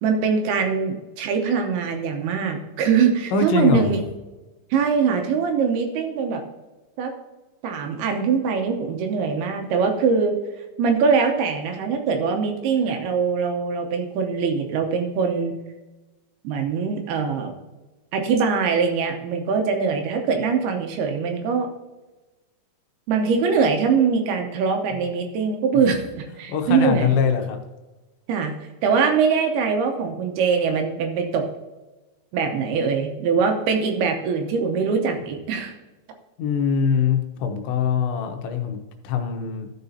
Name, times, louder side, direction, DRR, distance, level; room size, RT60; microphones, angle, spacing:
voice 1, 0.0-4.0 4.7-6.4 7.0-7.1 7.6-10.4 10.8-15.5 16.4-17.5 18.1-21.7 23.1-27.1 28.3-28.6 28.8-31.5 32.3-35.7, right 5 dB, 75° right, 4 dB, 2.7 m, -22 dB
voice 2, 3.3-4.0 26.5-27.6 36.4-39.7, left 6 dB, 90° left, 5 dB, 3.3 m, -23 dB
14.0 x 6.7 x 2.7 m, 1.1 s
omnidirectional pair, 5.0 m